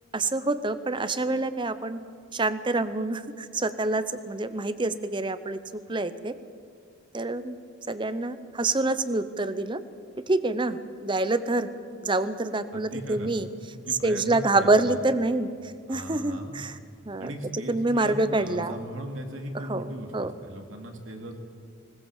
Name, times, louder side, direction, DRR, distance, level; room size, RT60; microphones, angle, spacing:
voice 1, 0.1-2.0 2.3-6.3 7.1-7.6 7.9-9.8 10.2-11.7 12.0-13.5 14.0-16.8 17.0-18.8 19.5-20.3, right 2 dB, 25° right, 12 dB, 0.7 m, -27 dB
voice 2, 12.7-13.3 13.8-15.0 15.9-16.6 17.2-21.4, right 1 dB, 70° right, 3 dB, 2.5 m, -38 dB
20.0 x 19.5 x 7.4 m, 2.4 s
head